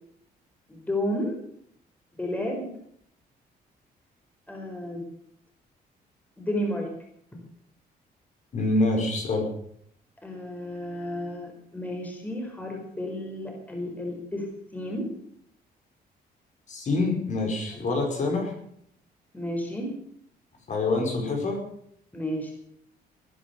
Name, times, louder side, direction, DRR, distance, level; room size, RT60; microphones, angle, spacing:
voice 1, 0.7-1.3 2.2-2.7 4.5-5.0 6.4-6.9 10.2-14.4 14.7-15.1 19.3-19.9 22.1-22.5, left 1 dB, 10° left, 1 dB, 4.5 m, -32 dB
voice 2, 8.5-9.4 16.7-18.5 20.7-21.6, left 2 dB, 45° left, 2 dB, 5.2 m, -26 dB
19.5 x 10.5 x 6.9 m, 0.68 s
cardioid pair, 130°, 17 cm